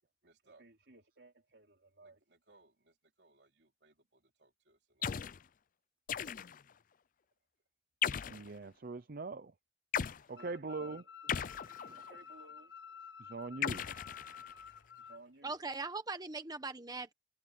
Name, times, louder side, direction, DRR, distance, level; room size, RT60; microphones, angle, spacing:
voice 1, 0.2-5.1 10.2-11.0 12.0-12.7 13.6-13.7 15.0-15.6, right 2 dB, 75° right, 3.8 m, -60 dB
sound 1, 5.0-5.4 6.1-6.7 8.0-8.5 9.9-10.2 11.3-12.2 13.6-14.7, left 8 dB, 50° left, 0.5 m, -37 dB
voice 2, 8.3-9.5 10.3-11.0 11.8-12.0 13.2-13.8, right 3 dB, 55° right, 0.7 m, -42 dB
sound 2, 10.4-15.2, left 7 dB, 85° left, 1.0 m, -52 dB
voice 3, 15.4-17.1, right 3 dB, 25° right, 1.3 m, -40 dB
head